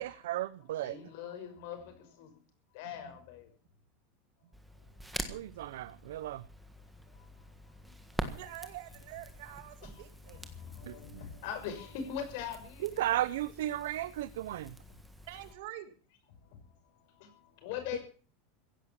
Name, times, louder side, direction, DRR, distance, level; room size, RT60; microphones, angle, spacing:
voice 1, 0.0-0.9 5.3-6.4 10.9-11.0 12.8-14.7, right 14 dB, 80° right, 15 dB, 0.7 m, -34 dB
voice 2, 0.6-2.4 2.7-3.5 4.8-4.9 5.4-5.5 6.6-6.7 7.1-8.2 9.8-13.2 16.4-18.0, left 8 dB, 55° left, 7 dB, 5.9 m, -43 dB
Crackle, 4.5-15.5, right 1 dB, ahead, 1.6 m, -46 dB
voice 3, 8.3-10.4 15.3-15.9, right 14 dB, 60° right, 9 dB, 2.6 m, -46 dB
16.0 x 11.5 x 7.3 m, 0.40 s
supercardioid pair, 175°, 0 cm